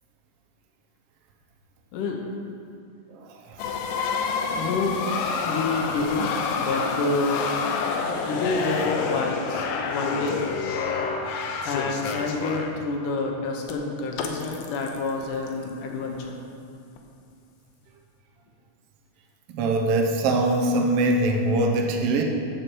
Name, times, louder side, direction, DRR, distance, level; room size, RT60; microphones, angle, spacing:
voice 1, 1.9-2.2 4.5-5.0 5.4-7.5 8.3-10.4 11.6-16.4, left 3 dB, 70° left, 1 dB, 2.4 m, -28 dB
sound 1, 3.6-12.8 13.7-13.8 14.1-16.2 17.0-17.1, left 5 dB, 90° left, 2.6 m, -28 dB
voice 2, 19.5-22.2, right 2 dB, 90° right, 2 dB, 1.3 m, -22 dB
13.0 x 6.5 x 4.6 m, 2.6 s
omnidirectional pair, 4.0 m